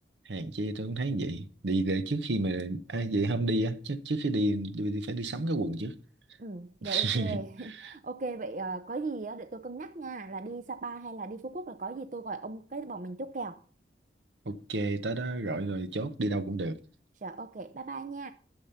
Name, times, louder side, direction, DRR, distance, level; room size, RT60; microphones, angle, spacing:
voice 1, 0.3-5.9 6.8-7.9 14.5-16.8, right 2 dB, 90° right, 0.8 m, -31 dB
voice 2, 6.4-13.6 17.2-18.3, right 3 dB, 45° right, 0.5 m, -38 dB
12.0 x 7.2 x 5.6 m
head